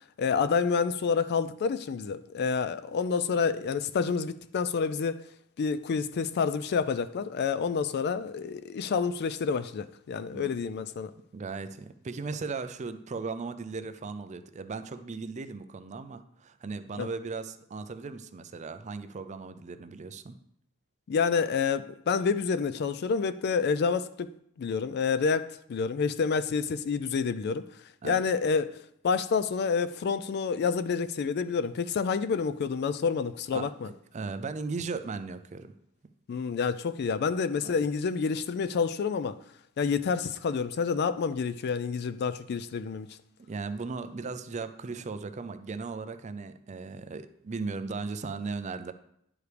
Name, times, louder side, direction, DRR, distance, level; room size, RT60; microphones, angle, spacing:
voice 1, 0.2-5.2 5.6-11.1 17.0-17.1 21.1-24.3 24.6-27.6 28.0-28.8 29.0-33.9 36.3-39.4 39.8-43.1, left 5 dB, 50° left, 0.3 m, -28 dB
voice 2, 11.3-20.4 28.0-28.2 33.5-35.7 37.6-37.7 43.5-48.9, right 4 dB, 35° right, 0.4 m, -37 dB
10.5 x 4.8 x 3.3 m
head